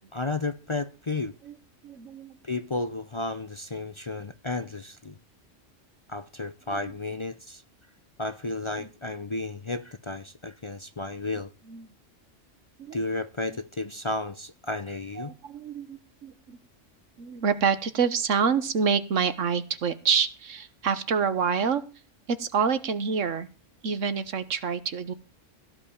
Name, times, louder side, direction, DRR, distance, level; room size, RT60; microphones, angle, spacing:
voice 1, 0.1-1.3 2.4-5.2 6.1-7.6 8.2-11.5 12.9-15.3, left 2 dB, 30° left, 0.6 m, -33 dB
voice 2, 1.8-2.3 6.7-6.8 8.8-8.9 11.7-11.9 12.8-13.0 13.5-13.6 15.2-16.6 17.2-21.8 22.3-23.5 23.8-25.1, right 6 dB, 80° right, 1.5 m, -27 dB
16.5 x 5.6 x 8.6 m
omnidirectional pair, 1.3 m